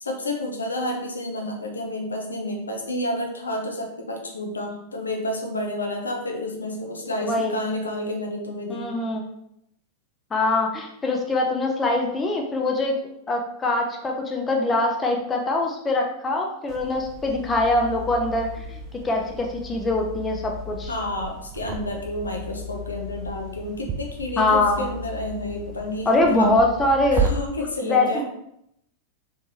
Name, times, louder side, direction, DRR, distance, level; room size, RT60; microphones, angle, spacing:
voice 1, 0.0-8.9 20.9-26.5 27.1-28.2, left 1 dB, 75° left, 2 dB, 0.6 m, -30 dB
voice 2, 7.2-7.6 8.7-9.2 10.3-13.0 13.3-20.9 24.4-24.8 26.1-27.2 27.8-28.2, left 2 dB, 15° left, 1 dB, 0.6 m, -23 dB
sound 1, 16.7-27.3, right 3 dB, 30° right, 0.4 m, -34 dB
3.3 x 3.2 x 2.7 m, 0.77 s
figure-of-eight pair, 90°, 0 cm